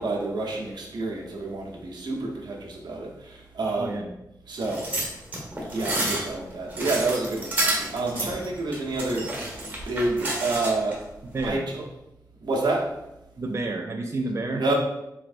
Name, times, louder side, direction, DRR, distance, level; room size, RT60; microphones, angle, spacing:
voice 1, 0.0-4.1 4.5-4.9 5.7-9.4 9.9-11.0 11.4-11.8 12.4-13.0 14.5-14.7, right 2 dB, 85° right, -1 dB, 0.7 m, -28 dB
voice 2, 3.8-4.1 8.2-8.3 11.3-11.6 13.4-14.6, right 2 dB, 40° right, 2 dB, 0.4 m, -30 dB
sound 1, 4.6-11.0 11.4-11.5, right 1 dB, 20° right, 1.3 m, -30 dB
4.1 x 3.1 x 2.5 m, 0.89 s
wide cardioid pair, 85°, 7 cm